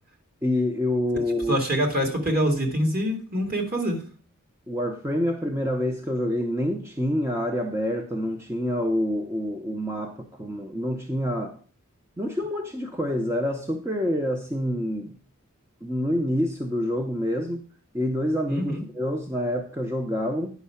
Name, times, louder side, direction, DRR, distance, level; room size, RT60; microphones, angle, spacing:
voice 1, 0.4-1.6 4.7-11.6 12.2-15.2 15.8-17.6 17.9-20.5, equal, 10° right, 4 dB, 0.7 m, -27 dB
voice 2, 1.5-4.0 18.5-18.8, equal, 45° right, 3 dB, 2.2 m, -25 dB
9.4 x 5.6 x 5.6 m, 0.40 s
head